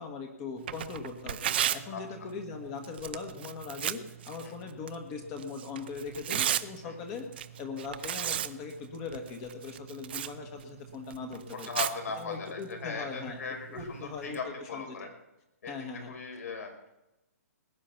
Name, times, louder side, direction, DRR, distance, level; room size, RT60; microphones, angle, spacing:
voice 1, 0.0-11.7 12.2-13.4 13.7-15.1 15.7-16.1, left 5 dB, 20° left, 4 dB, 1.4 m, -40 dB
Tearing, 0.6-14.4, right 10 dB, 40° right, 0.5 m, -37 dB
voice 2, 11.5-15.1 15.6-15.7 16.1-16.9, left 4 dB, 70° left, 4 dB, 4.5 m, -38 dB
20.0 x 9.5 x 5.8 m, 0.93 s
hypercardioid pair, 170°, 9 cm